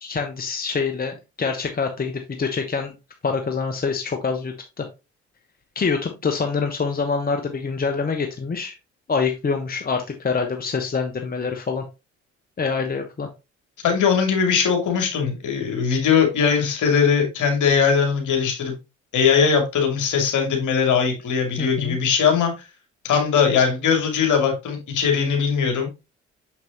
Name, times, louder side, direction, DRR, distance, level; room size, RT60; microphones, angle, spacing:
voice 1, 0.0-2.9 3.2-4.8 5.7-8.7 9.1-11.8 12.6-13.3 21.6-22.0, left 5 dB, 25° left, 1.2 m, -25 dB
voice 2, 13.8-18.8 19.1-22.5 23.0-25.9, left 6 dB, 50° left, 2.6 m, -20 dB
6.8 x 5.9 x 2.9 m
figure-of-eight pair, 50°, 37 cm